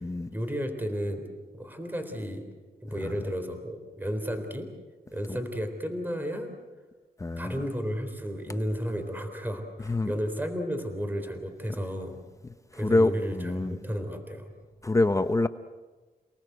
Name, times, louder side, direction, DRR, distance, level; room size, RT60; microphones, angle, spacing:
voice 1, 0.3-1.3 1.5-2.5 2.8-4.7 5.1-6.5 7.4-12.2 12.7-14.5, equal, 10° right, 3.8 m, -33 dB
voice 2, 7.2-7.6 9.8-10.1 12.7-13.8 14.8-15.5, left 2 dB, 20° left, 0.8 m, -26 dB
29.0 x 19.0 x 8.0 m
wide cardioid pair, 105°, 17 cm